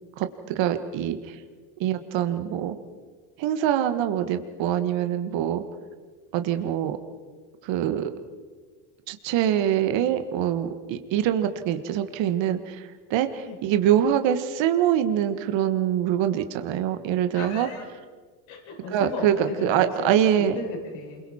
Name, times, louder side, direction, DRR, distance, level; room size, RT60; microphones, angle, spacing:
voice 1, 0.2-1.4 1.8-2.8 3.4-5.6 6.3-7.0 7.6-8.1 9.1-17.7 18.9-20.6, right 10 dB, 60° right, 9 dB, 1.6 m, -24 dB
voice 2, 17.3-17.8 18.5-21.2, left 3 dB, 70° left, -1 dB, 7.1 m, -36 dB
28.5 x 22.5 x 4.4 m, 1.5 s
hypercardioid pair, 75°, 49 cm